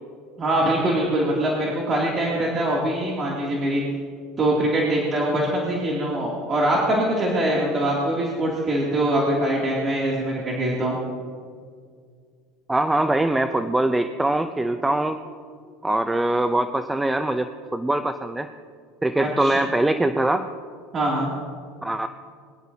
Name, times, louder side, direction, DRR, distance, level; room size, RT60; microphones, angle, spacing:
voice 1, 0.4-3.8 4.4-11.0 19.2-19.6 20.9-21.3, right 1 dB, 30° right, -4 dB, 2.6 m, -23 dB
voice 2, 12.7-15.2 15.8-18.5 19.0-20.5 21.8-22.1, right 1 dB, 10° right, 9 dB, 0.5 m, -22 dB
22.5 x 11.5 x 2.8 m, 2.1 s
supercardioid pair, 120°, 0 cm